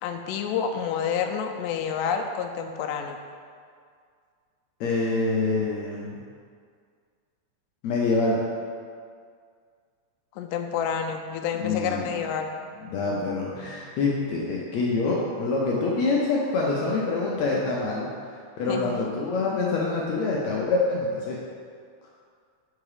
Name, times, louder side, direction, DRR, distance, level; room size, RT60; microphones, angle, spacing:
voice 1, 0.0-3.2 10.4-12.5 18.7-19.0, left 7 dB, 90° left, 4 dB, 2.1 m, -29 dB
voice 2, 4.8-6.2 7.8-8.4 11.6-12.1 12.8-18.1 18.6-21.4, left 3 dB, 75° left, -4 dB, 1.7 m, -26 dB
6.0 x 4.7 x 4.9 m, 2.1 s
omnidirectional pair, 3.7 m